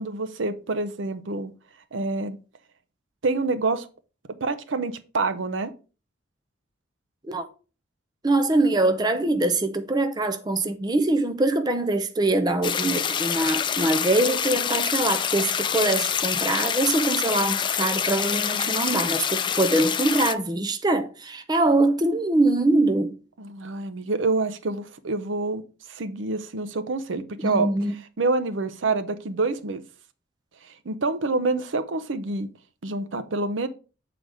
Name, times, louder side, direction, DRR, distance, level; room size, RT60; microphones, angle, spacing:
voice 1, 0.0-1.5 1.9-2.4 3.2-3.9 4.4-5.7 23.4-25.6 25.9-27.7 28.2-29.8 30.8-32.5 32.8-33.7, right 3 dB, 80° right, 0.7 m, -27 dB
voice 2, 8.2-23.1 27.4-27.9, right 2 dB, 20° right, 0.6 m, -23 dB
sound 1, 12.6-20.3, left 8 dB, 25° left, 0.3 m, -26 dB
7.6 x 4.0 x 4.8 m
head